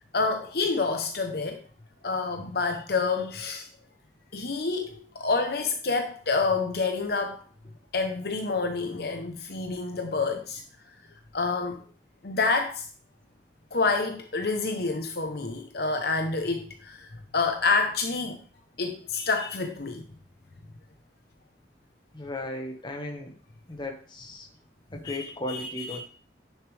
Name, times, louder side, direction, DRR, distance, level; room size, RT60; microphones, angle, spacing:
voice 1, 0.1-1.6 2.0-3.7 4.3-7.4 7.9-10.6 11.3-11.8 12.2-12.9 13.7-18.4 18.8-20.0 25.0-26.0, left 4 dB, 60° left, 0.9 m, -28 dB
voice 2, 22.1-23.3 23.7-24.5 24.9-26.0, left 1 dB, 25° left, 1.5 m, -36 dB
9.7 x 6.7 x 3.4 m
head